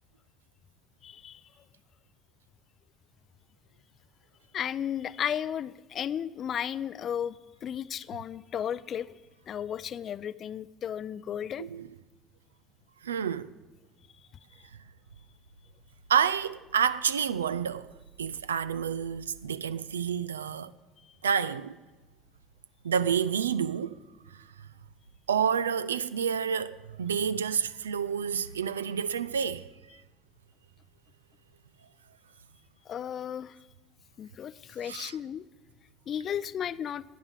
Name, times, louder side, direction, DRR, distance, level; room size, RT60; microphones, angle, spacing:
voice 1, 1.0-1.4 4.5-9.2 9.5-11.7 32.9-33.6 34.2-35.5 36.1-37.0, left 9 dB, 45° left, 0.4 m, -34 dB
voice 2, 13.0-13.5 16.1-17.9 18.2-20.7 21.2-21.8 22.8-24.0 24.3-24.7 25.3-29.7 34.8-35.2, right 7 dB, 80° right, 0.4 m, -29 dB
10.5 x 9.3 x 7.0 m
figure-of-eight pair, 60°, 0 cm